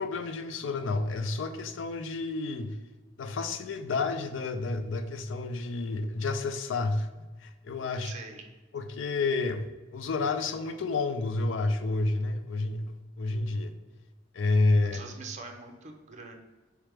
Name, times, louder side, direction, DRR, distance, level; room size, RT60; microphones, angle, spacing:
voice 1, 0.0-2.8 3.2-7.1 7.4-8.1 8.7-9.7 9.9-13.7 14.3-15.0, left 3 dB, 75° left, 9 dB, 0.4 m, -30 dB
voice 2, 8.0-8.5 14.9-16.3, right 4 dB, 35° right, 3 dB, 0.5 m, -43 dB
3.3 x 3.3 x 4.7 m, 1.2 s
head